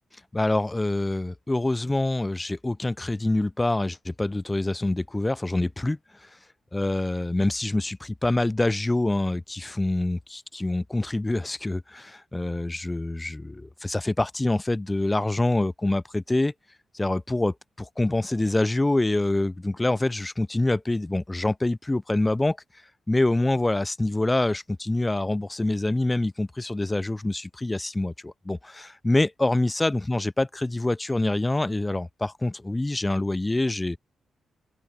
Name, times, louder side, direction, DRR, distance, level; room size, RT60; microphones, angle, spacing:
voice 1, 0.3-6.3 6.7-16.5 16.9-22.6 23.1-34.0, left 2 dB, 20° left, 1.8 m, -26 dB
open air
cardioid pair, 65°, 0 cm